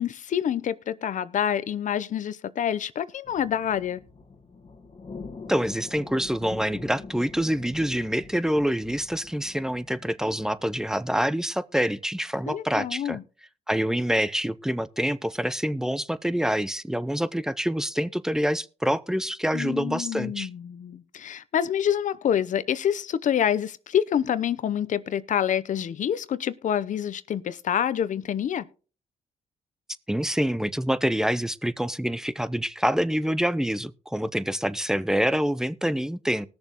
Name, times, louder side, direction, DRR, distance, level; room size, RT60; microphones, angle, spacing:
voice 1, 0.0-4.0 12.5-13.2 19.5-28.7, left 9 dB, 60° left, 0.8 m, -27 dB
sound 1, 3.3-10.8, left 4 dB, 40° left, 1.5 m, -44 dB
voice 2, 5.5-13.2 13.7-20.5 30.1-36.5, equal, 5° right, 0.7 m, -26 dB
19.0 x 6.9 x 3.0 m
cardioid pair, 70°, 14 cm